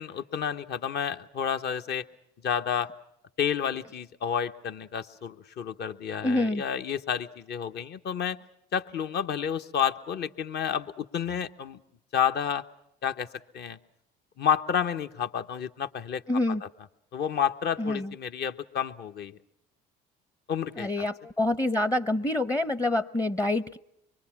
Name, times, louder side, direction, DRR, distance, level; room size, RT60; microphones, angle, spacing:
voice 1, 0.0-2.0 2.4-2.9 3.4-8.4 8.7-11.8 12.1-12.6 13.0-13.3 13.5-13.8 14.4-16.2 16.6-16.7 17.1-19.4 20.5-21.1, left 8 dB, 55° left, 8 dB, 1.1 m, -30 dB
voice 2, 6.2-6.6 16.3-16.6 17.8-18.1 20.8-23.8, left 2 dB, 15° left, 13 dB, 0.8 m, -27 dB
25.0 x 22.5 x 6.0 m, 0.81 s
hypercardioid pair, 70°, 21 cm